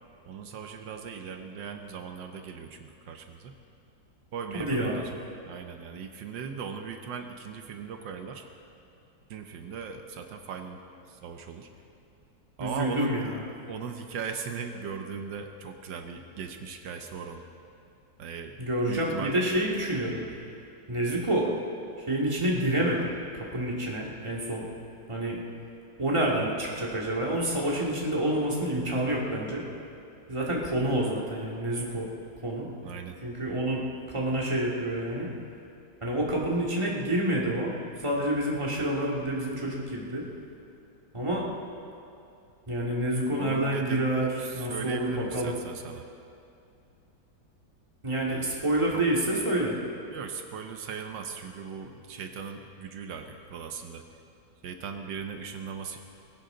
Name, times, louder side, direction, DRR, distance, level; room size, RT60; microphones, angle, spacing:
voice 1, 0.3-3.5 4.3-5.1 5.4-8.5 9.3-10.8 11.1-11.7 12.6-13.2 13.6-17.4 18.2-18.6 18.9-19.4 32.8-33.2 43.3-46.1 48.3-48.5 48.9-49.0 50.1-54.0 54.6-56.0, right 6 dB, 80° right, 5 dB, 1.6 m, -38 dB
voice 2, 4.5-5.0 12.6-13.3 18.6-20.2 20.9-21.5 22.0-24.6 25.1-25.4 26.0-29.6 30.3-32.1 32.4-32.7 33.2-33.8 34.1-35.3 36.0-37.7 38.0-40.2 41.1-41.4 42.7-45.5 48.0-49.8, right 1 dB, 15° right, -3 dB, 2.2 m, -28 dB
20.5 x 17.0 x 3.9 m, 2.6 s
omnidirectional pair, 2.0 m